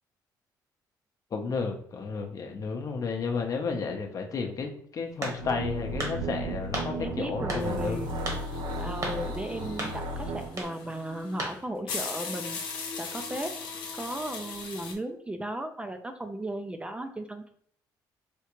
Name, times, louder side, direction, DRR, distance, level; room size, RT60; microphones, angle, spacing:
voice 1, 1.3-8.1, left 4 dB, 50° left, 4 dB, 0.7 m, -32 dB
sound 1, 5.2-5.6 6.0-6.2 6.7-6.9 7.5-7.7 8.3-8.4 9.0-9.2 9.8-10.0 10.5-10.7 11.4-11.6, right 1 dB, 50° right, 1.3 m, -33 dB
sound 2, 5.3-10.6, right 1 dB, 70° right, 0.5 m, -35 dB
voice 2, 7.0-8.2 8.8-13.5 14.0-17.5, right 1 dB, 15° right, 7 dB, 0.4 m, -36 dB
sound 3, 7.6-14.9, left 5 dB, 85° left, 0.8 m, -39 dB
4.3 x 2.4 x 2.9 m, 0.63 s
cardioid pair, 90°, 8 cm